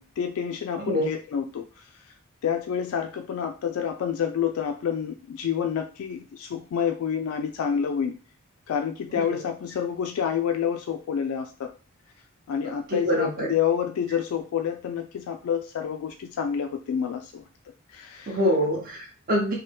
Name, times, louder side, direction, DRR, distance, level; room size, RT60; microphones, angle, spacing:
voice 1, 0.0-2.1 2.4-8.1 8.7-11.7 12.5-17.4 17.9-18.4, left 8 dB, 75° left, 5 dB, 0.3 m, -28 dB
voice 2, 12.9-13.5 18.3-19.5, equal, 40° right, -3 dB, 0.6 m, -25 dB
2.7 x 2.1 x 3.3 m, 0.37 s
head